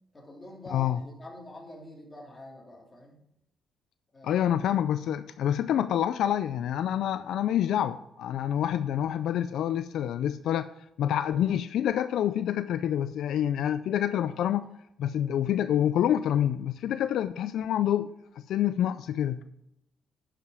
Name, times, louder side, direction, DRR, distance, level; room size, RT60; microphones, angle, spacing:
voice 1, 0.1-3.2 4.1-4.4, left 1 dB, 20° left, -2 dB, 2.8 m, -46 dB
voice 2, 4.2-10.7 11.0-14.7 15.0-18.1 18.4-19.4, left 10 dB, 75° left, 12 dB, 0.3 m, -27 dB
11.0 x 5.0 x 4.7 m, 0.81 s
cardioid pair, 90°, 0 cm